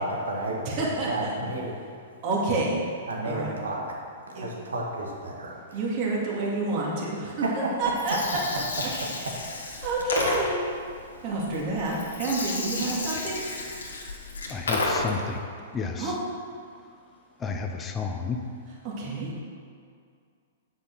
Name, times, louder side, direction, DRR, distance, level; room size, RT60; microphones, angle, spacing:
voice 1, 0.0-1.8 3.1-5.8 7.4-8.2 9.0-9.4, right 1 dB, 85° right, -1 dB, 1.8 m, -32 dB
voice 2, 0.7-1.3 2.2-2.8 3.2-3.6 4.4-4.5 5.7-7.2 7.8-8.4 8.8-8.9 9.8-10.5 11.2-13.4 16.0-16.1 19.0-19.3, right 2 dB, 45° right, -5 dB, 2.3 m, -28 dB
Gurgling, 7.8-15.3, left 2 dB, 85° left, 1.6 m, -32 dB
voice 3, 14.5-15.4 15.7-16.2 17.4-18.4, left 5 dB, 20° left, 3 dB, 0.8 m, -31 dB
8.2 x 5.9 x 6.2 m, 2.3 s
hypercardioid pair, 120°, 0 cm